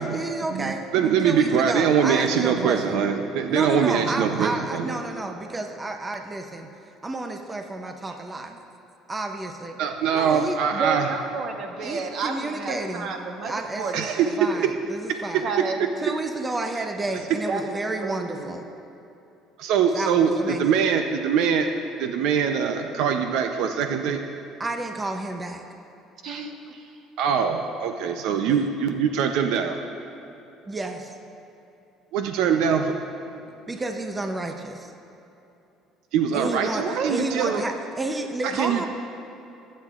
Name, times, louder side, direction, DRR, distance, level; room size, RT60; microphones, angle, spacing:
voice 1, 0.0-0.8 1.2-3.0 3.5-6.7 7.0-8.6 9.1-9.8 10.1-10.6 11.8-13.1 13.4-14.1 14.4-15.5 16.0-18.6 19.9-20.6 24.6-25.6 30.7-31.1 33.7-34.9 36.3-38.9, right 2 dB, 15° right, 5 dB, 0.6 m, -31 dB
voice 2, 0.5-5.0 9.8-11.1 13.9-14.3 14.6-14.7 15.3-15.4 16.1-16.2 19.6-21.7 22.0-24.2 27.2-29.8 32.1-32.9 36.1-37.6 38.4-38.9, right 7 dB, 75° right, 5 dB, 0.6 m, -23 dB
voice 3, 10.7-14.7 15.4-15.9 17.5-18.6 26.2-26.9 36.7-37.1 37.4-37.6, right 4 dB, 55° right, 4 dB, 1.1 m, -31 dB
20.0 x 8.5 x 2.5 m, 2.8 s
cardioid pair, 125°, 0 cm